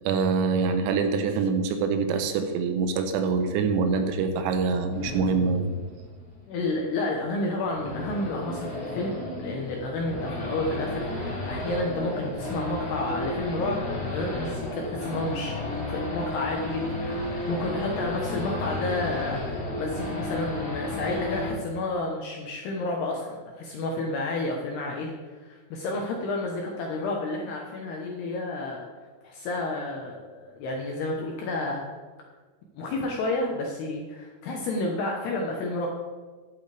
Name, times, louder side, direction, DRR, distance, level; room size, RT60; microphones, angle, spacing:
voice 1, 0.0-5.7, right 5 dB, 85° right, 7 dB, 3.6 m, -25 dB
Race car auto racing / Idling / Accelerating revving vroom, 4.9-21.5, left 1 dB, 40° left, 1.4 m, -33 dB
voice 2, 6.5-9.1 9.4-31.8 32.8-35.9, left 2 dB, 75° left, 0 dB, 2.5 m, -31 dB
12.0 x 11.0 x 3.4 m, 1.4 s
omnidirectional pair, 5.9 m